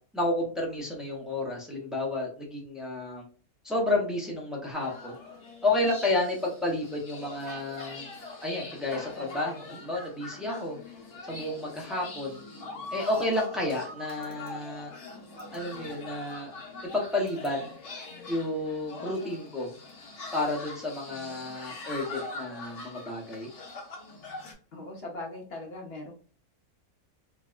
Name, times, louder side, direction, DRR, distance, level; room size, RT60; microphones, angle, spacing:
voice 1, 0.1-3.2 3.6-5.1 5.6-8.1 8.4-10.8 11.2-12.4 12.9-14.9 15.5-16.5 16.9-17.8 18.3-19.7 20.3-23.5, left 2 dB, ahead, -2 dB, 0.3 m, -31 dB
sound 1, 4.7-24.5, left 3 dB, 85° left, 1.5 m, -43 dB
voice 2, 24.7-26.1, left 2 dB, 55° left, 0 dB, 0.7 m, -39 dB
3.3 x 2.2 x 2.3 m, 0.43 s
omnidirectional pair, 1.6 m